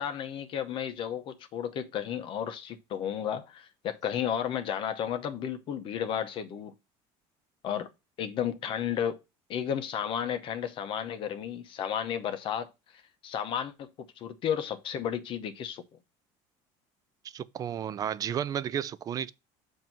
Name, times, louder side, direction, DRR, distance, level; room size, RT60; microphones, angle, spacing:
voice 1, 0.0-6.7 7.6-7.9 8.2-9.2 9.5-12.7 13.2-15.8, left 9 dB, 45° left, 0.8 m, -33 dB
voice 2, 17.3-19.3, right 9 dB, 30° right, 0.3 m, -32 dB
7.4 x 2.7 x 5.8 m
cardioid pair, 140°, 12 cm